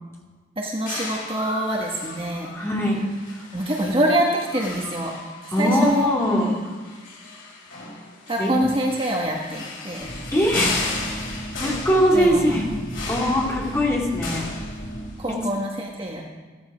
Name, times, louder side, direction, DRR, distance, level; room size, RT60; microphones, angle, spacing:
voice 1, 0.6-2.5 3.5-5.1 5.6-6.1 8.3-10.1 12.1-12.6 15.2-16.2, right 1 dB, 25° right, -1 dB, 1.4 m, -25 dB
sound 1, 0.9-15.3, left 3 dB, 85° left, 5.4 m, -35 dB
voice 2, 2.5-3.0 5.5-6.5 8.4-8.5 10.3-10.7 11.2-12.7 13.1-14.4 15.3-15.4, equal, 15° left, -4 dB, 2.9 m, -21 dB
sound 2, 10.0-15.1, equal, 40° left, 1.7 m, -35 dB
15.0 x 14.0 x 5.1 m, 1.4 s
head